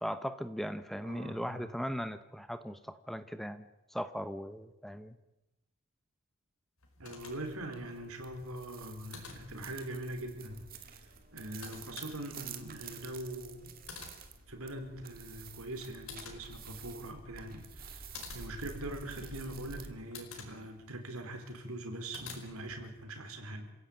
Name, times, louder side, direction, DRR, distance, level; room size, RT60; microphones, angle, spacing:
voice 1, 0.0-5.1, equal, ahead, 11 dB, 0.9 m, -38 dB
voice 2, 1.0-1.7 7.0-11.0 11.3-13.8 14.5-23.7, right 1 dB, 85° right, 7 dB, 4.3 m, -42 dB
sound 1, 6.8-23.0, left 5 dB, 80° left, 5.0 m, -53 dB
sound 2, 7.2-19.9, right 5 dB, 40° right, 2.4 m, -50 dB
27.5 x 16.5 x 9.2 m, 0.97 s
head